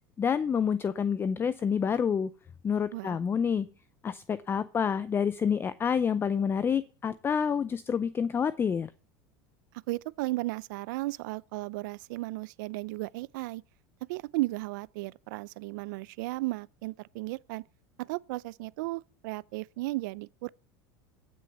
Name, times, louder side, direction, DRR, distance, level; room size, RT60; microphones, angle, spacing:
voice 1, 0.2-2.3 2.6-3.7 4.0-8.9, left 7 dB, 20° left, 0.5 m, -28 dB
voice 2, 9.7-13.6 14.1-17.6 18.0-20.5, right 20 dB, 75° right, 0.5 m, -35 dB
15.5 x 6.3 x 7.0 m
supercardioid pair, 120°, 10 cm